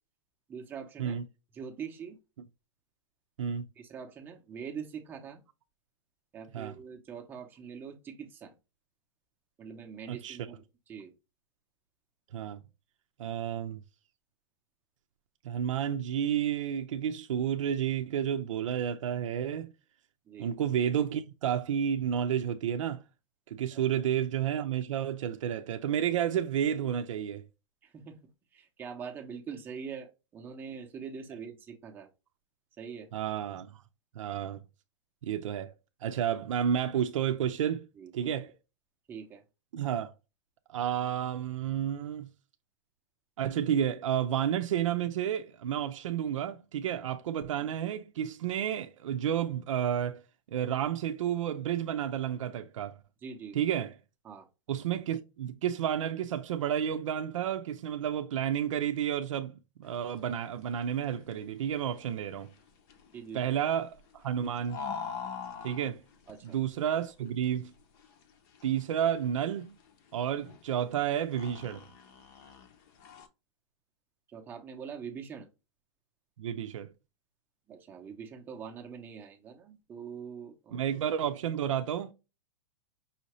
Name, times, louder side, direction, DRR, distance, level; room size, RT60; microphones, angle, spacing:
voice 1, 0.5-1.2 1.5-2.2 3.8-5.4 6.3-8.5 9.6-11.1 20.3-20.5 27.8-28.2 28.5-32.1 32.8-33.1 38.0-38.3 39.1-39.4 53.2-53.6 54.2-54.5 63.1-63.4 66.3-66.6 74.3-75.5 77.7-80.9, right 6 dB, 10° right, 0.7 m, -43 dB
voice 2, 13.2-13.8 15.4-19.7 20.4-23.0 23.5-27.4 33.1-33.8 34.1-34.6 35.2-35.7 36.0-37.9 38.1-38.5 39.7-40.1 40.7-42.3 43.4-50.2 50.5-53.0 53.5-53.9 54.7-62.5 63.3-64.8 65.6-66.0 66.4-67.7 68.6-69.8 70.1-71.8 76.4-76.9 80.7-82.1, right 9 dB, 80° right, 0.6 m, -31 dB
sound 1, 59.8-73.3, left 6 dB, 35° left, 0.7 m, -46 dB
5.6 x 2.8 x 3.0 m
supercardioid pair, 165°, 16 cm